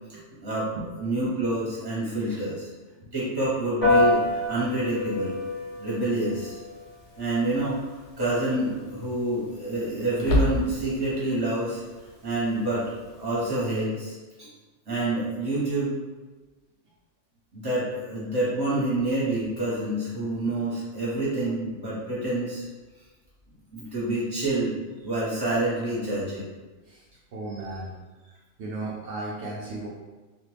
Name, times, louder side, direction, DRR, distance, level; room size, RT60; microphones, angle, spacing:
voice 1, 1.0-2.7 3.1-4.2 4.5-5.4 5.8-6.6 7.2-11.8 12.2-14.5 14.9-15.9 17.5-22.6 23.7-24.8 25.0-26.4, right 2 dB, 20° right, -8 dB, 1.1 m, -27 dB
Piano, 3.8-13.6, left 2 dB, 35° left, 0.8 m, -30 dB
sound 1, 5.6-5.7 7.5-7.9 8.2-8.3 10.1-11.0, left 1 dB, 70° left, 0.9 m, -26 dB
voice 2, 27.3-27.9 28.6-29.9, right 2 dB, 70° right, -6 dB, 0.8 m, -35 dB
2.5 x 2.5 x 3.2 m, 1.2 s
omnidirectional pair, 1.3 m